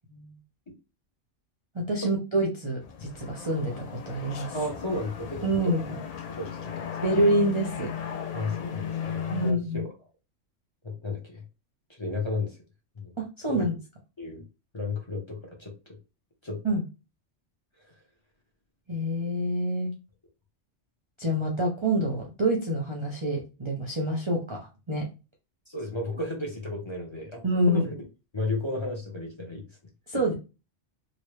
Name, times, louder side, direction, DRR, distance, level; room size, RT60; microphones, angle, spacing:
voice 1, 1.9-4.6 5.4-5.8 7.0-7.9 9.3-9.8 13.2-13.7 16.6-16.8 18.9-19.9 21.2-25.1 27.4-27.8 30.1-30.3, right 1 dB, 30° right, -2 dB, 0.6 m, -27 dB
sound 1, 2.8-9.5, left 8 dB, 60° left, 0.4 m, -36 dB
voice 2, 4.5-5.7 6.4-6.7 8.3-9.9 10.8-11.4 12.0-12.6 13.0-13.1 13.5-13.6 14.2-14.4 14.7-15.7 16.4-16.6 25.7-27.9 28.3-29.6, left 2 dB, 25° left, -1 dB, 0.8 m, -33 dB
3.1 x 2.7 x 3.1 m, 0.29 s
omnidirectional pair, 1.2 m